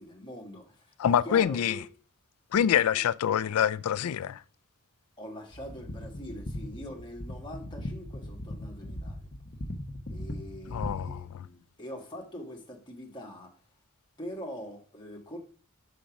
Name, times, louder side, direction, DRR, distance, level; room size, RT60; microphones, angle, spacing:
voice 1, 0.0-1.8 2.9-3.0 5.2-9.3 10.1-13.5 14.2-15.4, equal, 20° left, 1.5 m, -43 dB
voice 2, 1.0-1.8 2.5-4.4 10.7-11.5, left 9 dB, 70° left, 0.3 m, -26 dB
sound 1, 5.5-11.2, left 1 dB, 40° left, 0.9 m, -39 dB
5.8 x 5.3 x 5.1 m
head